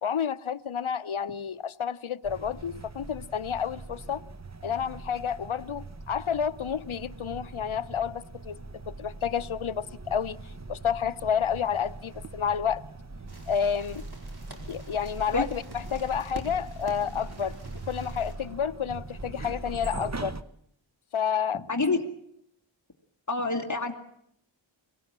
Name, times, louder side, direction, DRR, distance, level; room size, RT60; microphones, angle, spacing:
voice 1, 0.0-4.2 4.6-8.6 9.0-12.8 13.5-14.0 14.7-17.5 17.9-20.3 21.1-21.6, left 7 dB, 80° left, 0.8 m, -30 dB
sound 1, 2.2-20.4, right 3 dB, 35° right, 1.0 m, -41 dB
sound 2, 13.3-18.3, right 1 dB, 50° right, 4.8 m, -47 dB
voice 2, 21.5-22.0 23.3-23.9, left 3 dB, 35° left, 2.2 m, -27 dB
24.5 x 18.0 x 7.4 m
wide cardioid pair, 45°, 48 cm